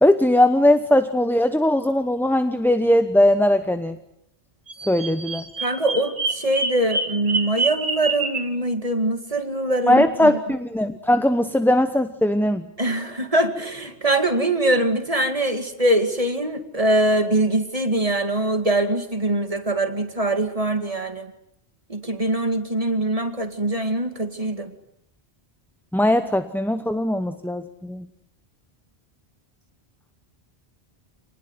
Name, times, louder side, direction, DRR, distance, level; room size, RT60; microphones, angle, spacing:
voice 1, 0.0-4.0 4.9-5.4 9.9-12.6 25.9-28.1, left 1 dB, ahead, 9 dB, 0.9 m, -19 dB
Bird vocalization bird call bird song, 4.7-8.5, right 3 dB, 85° right, 2.6 m, -27 dB
voice 2, 5.6-10.4 12.8-21.3 21.9-24.7, right 1 dB, 35° right, 7 dB, 2.3 m, -23 dB
27.0 x 20.0 x 9.6 m, 0.76 s
omnidirectional pair, 1.1 m